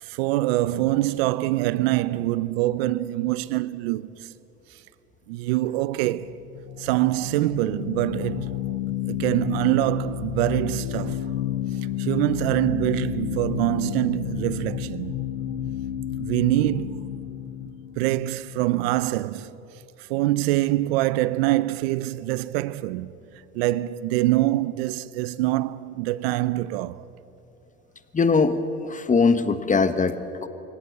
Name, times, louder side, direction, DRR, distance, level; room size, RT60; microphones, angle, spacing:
voice 1, 0.0-4.3 5.3-6.4 6.8-8.6 9.1-11.2 12.0-15.2 16.2-17.1 18.0-19.5 20.1-23.1 23.5-27.0, right 16 dB, 85° right, 0.7 m, -24 dB
sound 1, 6.1-19.2, left 12 dB, 90° left, 1.1 m, -31 dB
voice 2, 28.1-30.5, left 4 dB, 25° left, 1.4 m, -21 dB
24.0 x 17.0 x 8.0 m
supercardioid pair, 80°, 30 cm